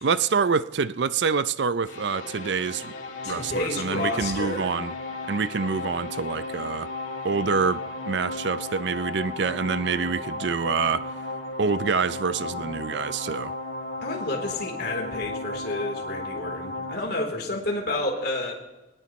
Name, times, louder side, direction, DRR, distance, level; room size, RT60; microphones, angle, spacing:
voice 1, 0.0-2.9 3.3-4.9 5.3-6.9 7.2-11.3 11.6-13.5, right 5 dB, 60° right, 0.5 m, -26 dB
sound 1, 1.9-16.9, left 2 dB, 85° left, 2.4 m, -35 dB
voice 2, 3.2-4.8 14.0-18.5, left 2 dB, 55° left, 3.5 m, -30 dB
22.0 x 19.0 x 3.1 m
head